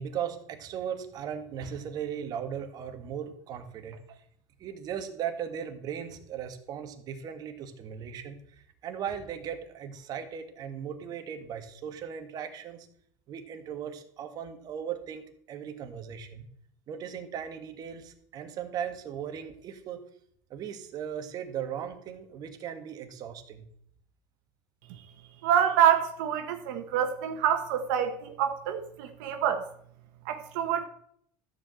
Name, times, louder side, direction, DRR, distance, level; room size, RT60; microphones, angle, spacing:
voice 1, 0.0-4.2 4.6-12.9 13.3-16.4 16.9-20.0 20.5-23.7, right 8 dB, 45° right, 7 dB, 1.7 m, -37 dB
voice 2, 25.4-29.7 30.2-30.9, right 9 dB, 80° right, 7 dB, 1.1 m, -26 dB
13.5 x 4.9 x 7.7 m, 0.65 s
cardioid pair, 135°, 10 cm